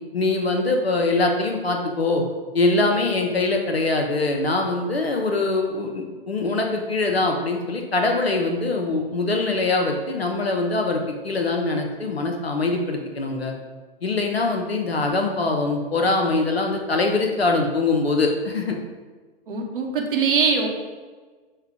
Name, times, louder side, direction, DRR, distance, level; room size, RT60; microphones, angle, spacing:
voice 1, 0.1-2.2 2.5-13.5 14.0-18.8, left 3 dB, 80° left, 3 dB, 0.7 m, -23 dB
voice 2, 19.5-20.7, right 5 dB, 60° right, 1 dB, 0.8 m, -22 dB
5.5 x 2.3 x 3.5 m, 1.4 s
figure-of-eight pair, 105°, 30 cm